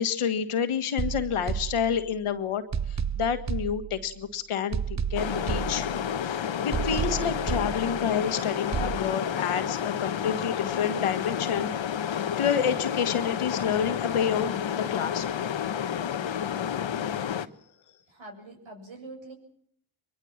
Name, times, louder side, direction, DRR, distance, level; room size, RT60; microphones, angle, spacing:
voice 1, 0.0-5.9 6.2-11.7 12.0-15.3, left 7 dB, 85° left, 9 dB, 1.7 m, -29 dB
sound 1, 1.0-2.3 2.7-4.3 4.7-6.3 6.7-8.3 8.7-9.0, right 7 dB, 35° right, 1.0 m, -32 dB
sound 2, 5.2-17.5, left 8 dB, 65° left, 1.2 m, -30 dB
voice 2, 18.1-19.3, right 2 dB, 65° right, 3 dB, 7.2 m, -44 dB
23.0 x 22.0 x 7.3 m, 0.66 s
cardioid pair, 50°, 49 cm